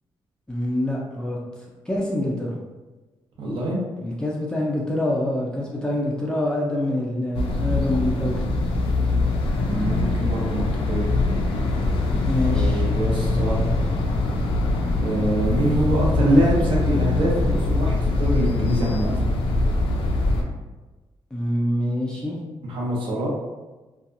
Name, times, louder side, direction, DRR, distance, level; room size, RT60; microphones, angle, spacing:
voice 1, 0.5-1.4 1.9-2.5 4.0-8.4 12.2-12.9 21.3-22.3, left 1 dB, 10° left, -4 dB, 0.3 m, -25 dB
voice 2, 3.4-3.8 9.6-11.1 12.5-13.6 15.0-19.1 22.6-23.3, right 1 dB, 70° right, -3 dB, 0.8 m, -24 dB
sound 1, 7.3-20.4, left 2 dB, 80° left, 0.4 m, -23 dB
2.7 x 2.2 x 2.5 m, 1.2 s
cardioid pair, 145°, 9 cm